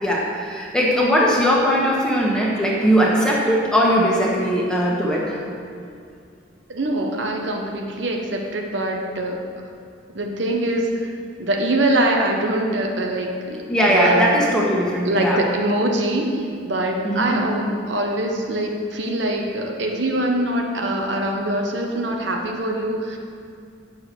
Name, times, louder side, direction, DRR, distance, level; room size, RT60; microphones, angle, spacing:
voice 1, 0.0-5.4 13.7-15.4 17.0-17.4, equal, 5° left, -4 dB, 1.5 m, -19 dB
voice 2, 6.7-9.4 10.1-11.1 11.4-13.6 13.9-14.3 15.0-23.2, right 1 dB, 70° right, 1 dB, 1.0 m, -23 dB
8.8 x 6.6 x 6.1 m, 2.4 s
head